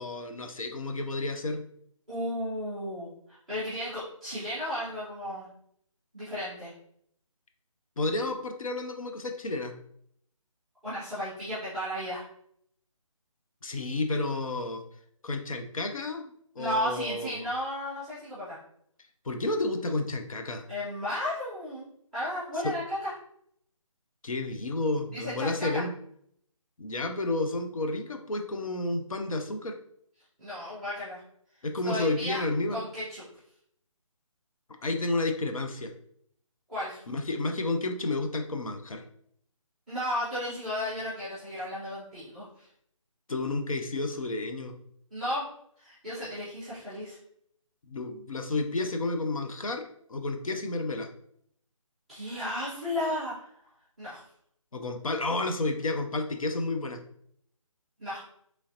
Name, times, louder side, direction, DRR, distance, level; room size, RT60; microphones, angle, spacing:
voice 1, 0.0-1.6 8.0-9.8 13.6-14.8 15.2-17.5 19.2-20.6 22.6-22.7 24.2-25.9 26.8-29.8 31.6-32.8 34.8-35.9 37.1-39.0 43.3-44.7 47.9-49.8 50.1-51.1 54.7-57.0, left 2 dB, 75° left, 5 dB, 0.5 m, -31 dB
voice 2, 2.1-5.5 6.1-6.7 10.8-12.2 16.6-18.6 20.7-23.1 25.1-25.8 30.4-31.2 31.8-32.4 32.7-33.2 36.7-37.0 39.9-42.7 45.1-45.5 45.8-47.2 52.1-53.5 54.0-54.2 58.0-58.2, left 1 dB, ahead, -19 dB, 0.4 m, -34 dB
3.1 x 2.4 x 2.7 m, 0.67 s
figure-of-eight pair, 155°, 18 cm